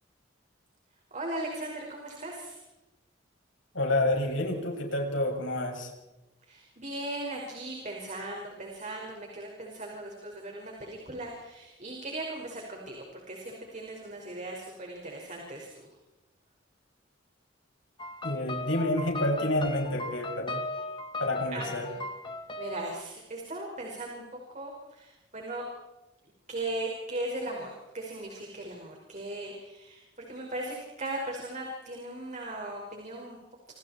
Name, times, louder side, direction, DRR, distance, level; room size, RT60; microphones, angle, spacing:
voice 1, 1.1-2.6 6.4-15.9 21.5-22.0 22.6-25.6 26.5-33.4, right 1 dB, 40° right, 0 dB, 5.5 m, -38 dB
voice 2, 3.7-5.9 18.2-20.6 21.2-21.9, left 1 dB, 85° left, 2 dB, 6.9 m, -29 dB
sound 1, 18.0-23.0, left 2 dB, 25° left, 2.0 m, -37 dB
30.0 x 28.0 x 4.5 m, 1.0 s
head